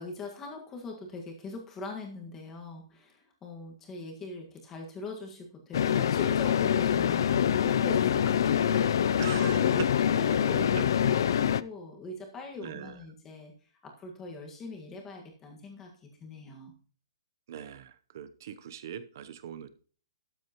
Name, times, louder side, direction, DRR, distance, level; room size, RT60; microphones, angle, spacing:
voice 1, 0.0-9.2 10.1-13.5 13.8-15.9 16.2-16.7, left 3 dB, 10° left, 1 dB, 1.7 m, -42 dB
sound 1, 5.7-11.6, left 9 dB, 50° left, 0.4 m, -25 dB
voice 2, 9.2-9.9 10.7-10.8 11.3-11.5 12.6-12.9 17.5-19.7, right 9 dB, 40° right, 12 dB, 0.8 m, -40 dB
12.5 x 10.5 x 3.0 m, 0.43 s
hypercardioid pair, 175°, 3 cm